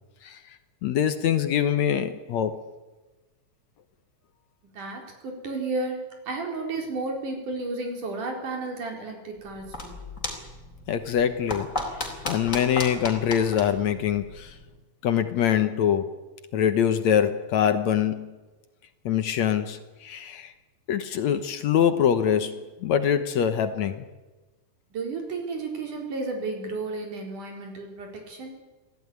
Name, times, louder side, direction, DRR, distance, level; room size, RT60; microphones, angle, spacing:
voice 1, 0.8-2.6 10.9-14.6 15.0-16.2 16.5-18.3 19.1-20.5 20.9-24.1, left 9 dB, 65° left, 9 dB, 2.2 m, -24 dB
voice 2, 4.7-10.0 24.9-28.6, right 3 dB, 70° right, 2 dB, 5.7 m, -33 dB
sound 1, 9.4-14.8, left 2 dB, 25° left, 4.0 m, -35 dB
26.5 x 16.5 x 9.6 m, 1.2 s
omnidirectional pair, 3.7 m